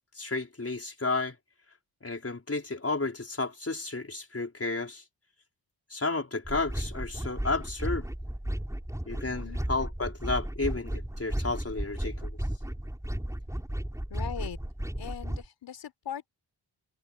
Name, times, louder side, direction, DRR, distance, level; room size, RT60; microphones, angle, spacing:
voice 1, 0.2-1.4 2.0-5.0 5.9-8.1 9.1-12.4, left 3 dB, 35° left, 5.2 m, -32 dB
sound 1, 6.5-15.5, right 1 dB, 5° right, 7.0 m, -34 dB
voice 2, 9.3-9.6 14.1-14.6 15.0-16.3, left 9 dB, 85° left, 4.3 m, -40 dB
cardioid pair, 60°, 42 cm